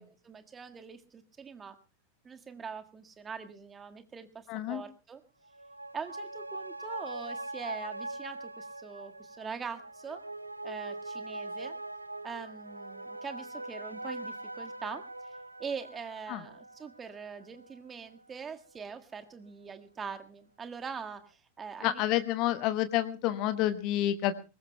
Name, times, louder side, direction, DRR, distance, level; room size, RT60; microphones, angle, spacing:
voice 1, 0.0-1.8 2.2-5.2 5.9-10.2 10.6-11.8 12.2-15.0 15.6-22.0, right 6 dB, 20° right, 7 dB, 1.7 m, -43 dB
voice 2, 4.5-4.8 16.3-16.4 21.8-24.4, left 13 dB, 40° left, 10 dB, 1.2 m, -29 dB
sound 1, 5.4-18.3 18.6-18.7, right 2 dB, 85° right, 0.8 m, -42 dB
23.5 x 20.5 x 2.2 m, 0.32 s
figure-of-eight pair, 90°, 0 cm